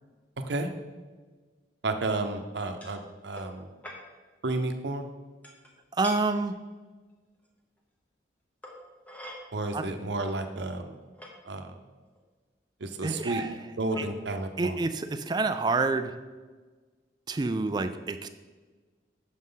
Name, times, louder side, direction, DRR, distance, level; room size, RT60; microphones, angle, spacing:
voice 1, 1.8-3.7 4.4-5.0 9.5-11.0 11.4-11.7 12.8-13.4 13.8-14.8, right 2 dB, 70° right, 6 dB, 0.7 m, -31 dB
sound 1, 2.8-3.0 3.4-3.6 3.8-4.0 5.4-5.7 6.0-6.2 7.4-7.5 8.6-9.4 10.2-10.3 10.7-11.3 12.2-12.3 13.4-13.6 13.9-14.1, left 1 dB, 10° left, 1.1 m, -43 dB
voice 2, 6.0-6.5 9.7-9.9 13.0-13.5 14.0-14.1 14.6-16.1 17.3-18.3, right 3 dB, 25° right, 10 dB, 0.3 m, -28 dB
9.5 x 6.1 x 3.9 m, 1.4 s
head